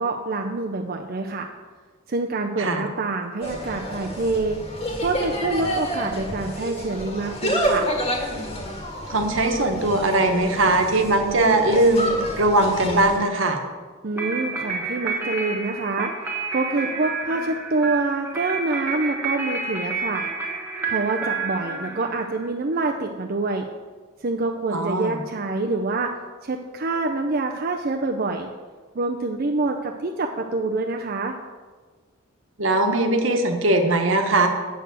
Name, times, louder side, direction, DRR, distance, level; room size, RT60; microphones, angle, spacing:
voice 1, 0.0-1.5 2.1-4.6 5.0-7.9 14.0-16.1 16.5-20.2 20.9-23.7 24.2-26.2 26.4-28.5 28.9-31.3, right 3 dB, 45° right, 2 dB, 0.6 m, -26 dB
Insect, 3.4-13.2, equal, 30° left, 1.8 m, -29 dB
voice 2, 9.1-12.1 12.4-13.6 24.7-25.2 32.6-34.5, right 2 dB, 70° right, 5 dB, 1.3 m, -20 dB
sound 1, 14.2-22.5, right 4 dB, 10° right, 1.6 m, -30 dB
7.8 x 6.8 x 8.0 m, 1.4 s
head